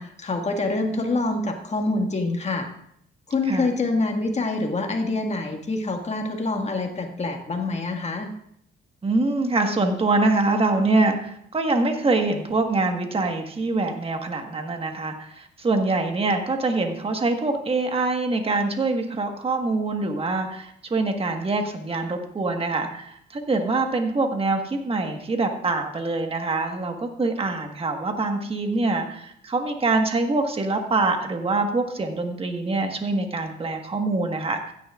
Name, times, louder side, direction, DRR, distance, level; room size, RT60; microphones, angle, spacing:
voice 1, 0.0-2.7 3.3-8.3, left 2 dB, 35° left, 3 dB, 1.9 m, -26 dB
voice 2, 9.0-34.7, right 3 dB, 30° right, 4 dB, 1.5 m, -24 dB
15.5 x 10.5 x 2.5 m, 0.71 s
cardioid pair, 90°, 20 cm